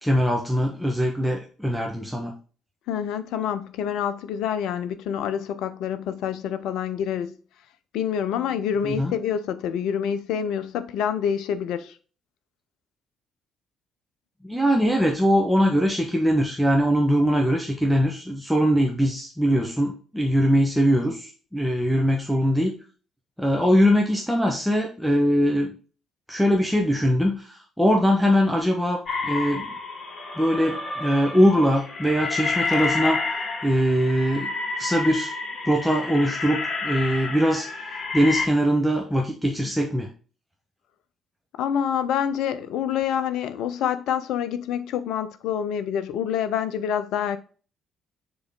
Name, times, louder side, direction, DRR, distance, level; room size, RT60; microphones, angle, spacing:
voice 1, 0.0-2.3 8.8-9.1 14.4-22.8 23.4-25.7 26.3-29.7 30.4-33.2 33.6-34.5 34.8-35.3 35.6-37.7 38.1-40.1, equal, ahead, 1.3 m, -22 dB
voice 2, 2.9-7.4 7.9-12.0 41.6-47.4, left 8 dB, 65° left, 0.6 m, -27 dB
sound 1, 29.1-38.5, left 3 dB, 40° left, 1.8 m, -30 dB
6.9 x 3.9 x 3.8 m
figure-of-eight pair, 45°, 0 cm